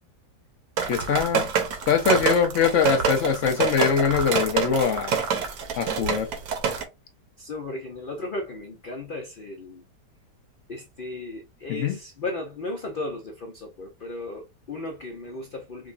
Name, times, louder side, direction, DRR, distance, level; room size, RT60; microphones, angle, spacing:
sound 1, 0.8-6.8, right 6 dB, 70° right, 1.3 m, -26 dB
voice 1, 0.9-1.4 1.9-5.2 5.8-6.3 11.7-12.0, left 7 dB, 60° left, 0.9 m, -22 dB
voice 2, 7.4-9.8 10.7-15.9, left 2 dB, 85° left, 0.4 m, -35 dB
4.9 x 2.2 x 2.4 m
omnidirectional pair, 1.8 m